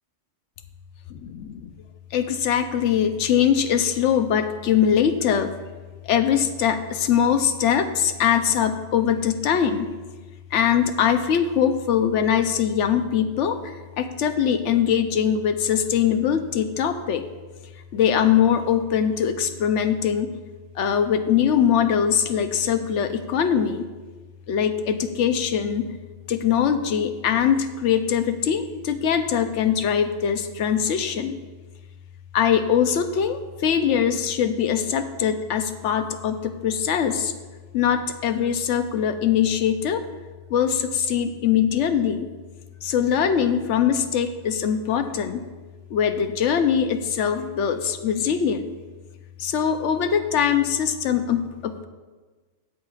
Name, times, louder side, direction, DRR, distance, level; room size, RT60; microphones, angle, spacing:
voice 1, 1.2-1.5 2.1-5.5 6.0-9.9 10.5-17.2 17.9-20.3 20.8-23.9 24.5-25.8 26.3-31.3 32.3-37.3 37.7-40.0 40.5-42.3 42.8-45.4 45.9-48.7 49.4-51.9, left 8 dB, 70° left, 8 dB, 0.9 m, -22 dB
13.0 x 7.3 x 2.4 m, 1.3 s
omnidirectional pair, 1.3 m